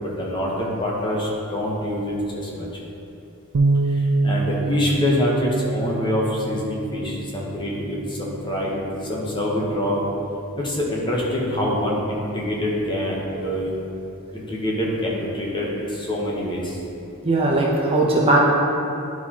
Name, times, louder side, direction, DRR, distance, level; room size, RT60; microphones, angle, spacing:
voice 1, 0.0-2.8 3.8-10.0 10.6-13.7 14.3-16.8, left 1 dB, 20° left, -4 dB, 0.9 m, -25 dB
Bass guitar, 3.5-9.8, right 3 dB, 65° right, 0.4 m, -26 dB
voice 2, 17.2-18.4, right 2 dB, 25° right, -4 dB, 0.7 m, -18 dB
11.0 x 4.6 x 2.8 m, 2.8 s
head